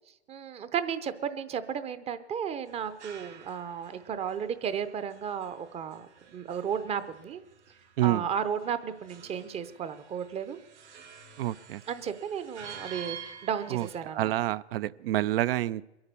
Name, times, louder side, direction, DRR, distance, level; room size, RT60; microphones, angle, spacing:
voice 1, 0.3-7.4 8.0-10.6 11.9-14.3, right 8 dB, 20° right, 13 dB, 0.7 m, -34 dB
sound 1, 2.7-14.0, right 7 dB, 85° right, 3.2 m, -49 dB
voice 2, 11.4-11.8 13.7-13.9 14.1-15.8, right 15 dB, 55° right, 18 dB, 0.5 m, -28 dB
22.5 x 8.8 x 6.9 m, 0.99 s
hypercardioid pair, 125°, 34 cm